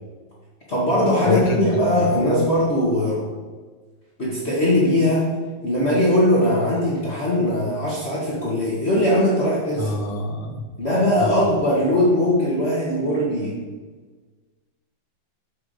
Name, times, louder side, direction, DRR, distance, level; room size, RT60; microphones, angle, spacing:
voice 1, 0.7-3.2 4.2-5.3 5.6-9.9 10.8-13.5, left 1 dB, 35° left, -7 dB, 1.6 m, -20 dB
voice 2, 1.2-2.1 9.8-10.6 11.2-11.4, left 3 dB, 85° left, 3 dB, 1.9 m, -25 dB
6.3 x 4.8 x 6.5 m, 1.4 s
omnidirectional pair, 2.1 m